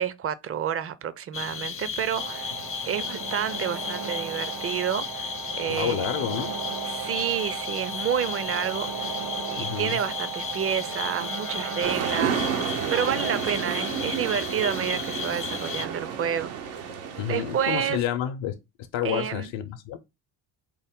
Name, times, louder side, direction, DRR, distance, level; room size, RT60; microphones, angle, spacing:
voice 1, 0.0-2.6 2.9-6.1 6.9-9.2 9.5-16.5 17.3-18.0 19.0-19.5, right 9 dB, 30° right, 0.4 m, -29 dB
sound 1, 1.3-15.9, left 6 dB, 30° left, 0.5 m, -35 dB
sound 2, 2.2-12.2, right 7 dB, 70° right, 1.1 m, -36 dB
voice 2, 5.7-6.6 9.5-10.0 17.2-18.6 18.9-20.0, left 10 dB, 65° left, 0.7 m, -29 dB
sound 3, 11.8-18.0, right 7 dB, 85° right, 0.8 m, -31 dB
4.6 x 2.1 x 3.5 m
supercardioid pair, 60°, 50 cm